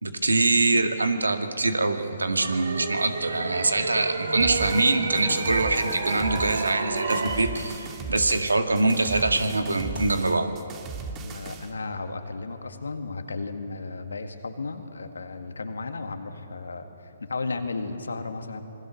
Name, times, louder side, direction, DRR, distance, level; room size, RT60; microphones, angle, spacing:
voice 1, 0.0-10.5, right 2 dB, 85° right, 7 dB, 1.8 m, -24 dB
sound 1, 2.4-7.4, right 3 dB, 70° right, 2.5 m, -30 dB
sound 2, 4.4-11.7, right 5 dB, 25° right, 1.9 m, -37 dB
voice 2, 11.2-18.6, left 3 dB, 80° left, 7 dB, 1.9 m, -34 dB
26.5 x 21.0 x 6.5 m, 2.9 s
figure-of-eight pair, 135°, 0 cm